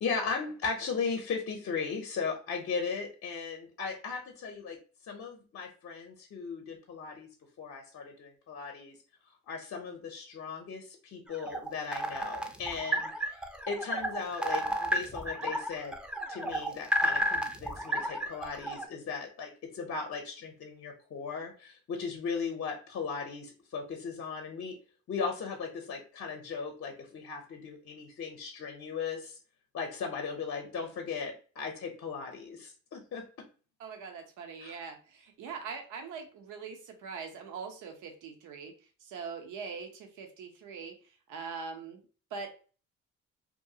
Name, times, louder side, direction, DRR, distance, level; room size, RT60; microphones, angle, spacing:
voice 1, 0.0-4.8 5.1-7.3 7.6-8.9 9.5-13.4 13.7-15.9 16.3-24.7 25.1-29.4 29.7-33.3 34.6-34.8, left 5 dB, 50° left, 3 dB, 0.6 m, -37 dB
sound 1, 11.3-18.8, right 1 dB, 5° right, 0.4 m, -32 dB
voice 2, 33.8-38.7 39.0-42.0 42.3-42.6, right 5 dB, 85° right, 4 dB, 0.6 m, -42 dB
2.6 x 2.3 x 2.7 m, 0.37 s
cardioid pair, 90°, 30 cm